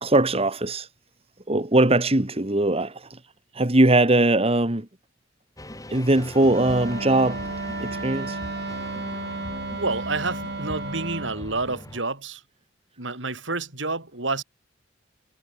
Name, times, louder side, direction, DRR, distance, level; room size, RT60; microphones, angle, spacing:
voice 1, 0.0-0.9 1.5-3.2 3.5-4.9 5.9-7.4 7.8-8.4, right 2 dB, 30° right, 1.9 m, -20 dB
sound 1, 5.6-12.0, left 1 dB, 20° left, 5.7 m, -40 dB
Wind instrument woodwind instrument, 6.5-11.4, right 2 dB, 60° right, 4.1 m, -33 dB
voice 2, 9.8-12.4 13.0-14.4, right 3 dB, 80° right, 6.0 m, -29 dB
head